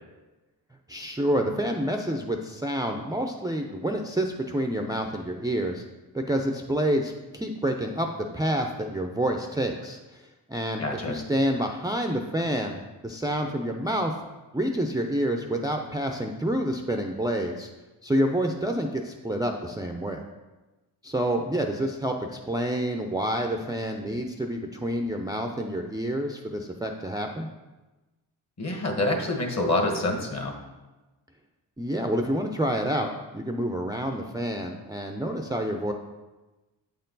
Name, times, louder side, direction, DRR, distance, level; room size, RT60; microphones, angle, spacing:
voice 1, 0.9-5.8 6.1-14.1 14.5-17.7 18.0-20.2 21.0-27.5 31.8-35.9, right 1 dB, 10° right, 3 dB, 0.5 m, -28 dB
voice 2, 10.8-11.2 28.6-30.5, left 2 dB, 40° left, 3 dB, 1.4 m, -26 dB
8.0 x 4.4 x 3.9 m, 1.1 s
cardioid pair, 75°, 42 cm